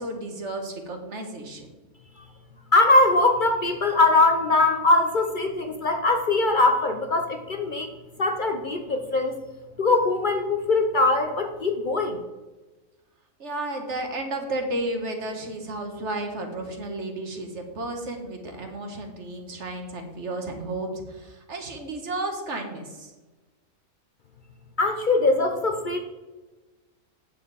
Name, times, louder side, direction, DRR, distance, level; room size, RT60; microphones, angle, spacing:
voice 1, 0.0-1.7 13.4-23.1, right 2 dB, 50° right, 4 dB, 1.4 m, -33 dB
voice 2, 2.7-7.9 8.2-9.4 9.8-12.2 24.8-26.0, left 2 dB, 50° left, 5 dB, 0.6 m, -21 dB
8.8 x 7.3 x 4.0 m, 1.2 s
omnidirectional pair, 1.6 m